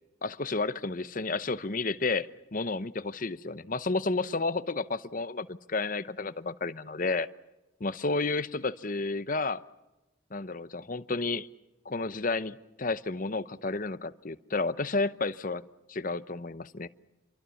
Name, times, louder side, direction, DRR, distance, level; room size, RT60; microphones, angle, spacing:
voice 1, 0.2-7.3 7.8-9.6 10.3-11.5 11.8-16.9, left 3 dB, 40° left, 0.8 m, -31 dB
28.0 x 23.5 x 7.1 m
head